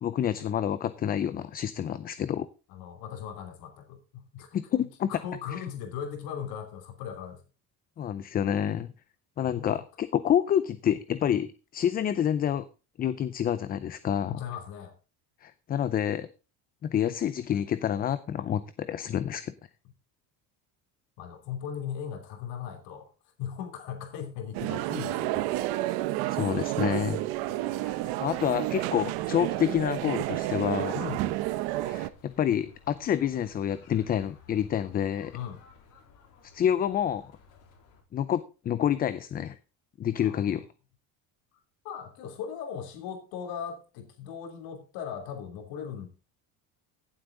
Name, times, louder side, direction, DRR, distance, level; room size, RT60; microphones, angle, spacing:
voice 1, 0.0-2.5 4.5-5.1 8.0-8.9 9.4-12.7 13.0-14.4 15.4-16.3 16.8-19.5 26.3-27.2 28.2-31.0 31.8-35.4 36.5-37.3 38.1-39.6 40.0-40.6, left 9 dB, 25° left, 14 dB, 0.4 m, -28 dB
voice 2, 2.7-4.6 5.1-7.4 9.4-9.8 14.2-14.9 21.2-23.1 23.4-25.5 27.5-28.0 28.4-28.6 30.9-31.2 35.3-35.6 40.2-40.4 41.8-46.1, left 8 dB, 80° left, 4 dB, 3.0 m, -38 dB
sound 1, 24.5-32.1, right 16 dB, 85° right, 0.9 m, -30 dB
sound 2, 27.6-38.0, left 5 dB, 60° left, 3.8 m, -55 dB
16.0 x 7.8 x 3.8 m, 0.33 s
cardioid pair, 160°, 36 cm